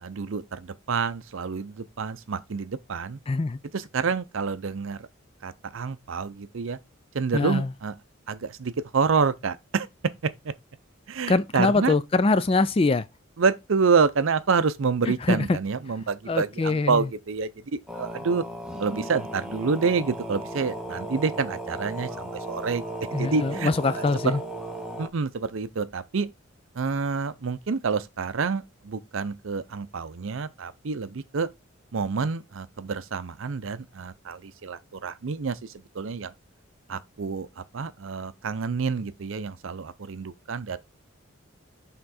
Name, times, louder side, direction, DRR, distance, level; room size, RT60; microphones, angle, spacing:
voice 1, 0.0-3.2 3.7-5.1 5.4-6.8 7.1-7.9 8.3-9.9 10.2-10.5 11.1-12.0 13.4-18.4 18.8-22.8 23.1-24.4 25.0-26.3 26.7-31.5 31.9-36.3 36.9-40.8, right 5 dB, 70° right, 0.5 m, -28 dB
voice 2, 3.3-3.6 7.3-7.7 11.3-13.1 15.3-15.4 16.3-17.0 23.1-24.4, left 3 dB, 25° left, 0.3 m, -23 dB
sound 1, 17.9-25.1, right 1 dB, 5° right, 0.8 m, -36 dB
6.7 x 3.7 x 4.2 m
head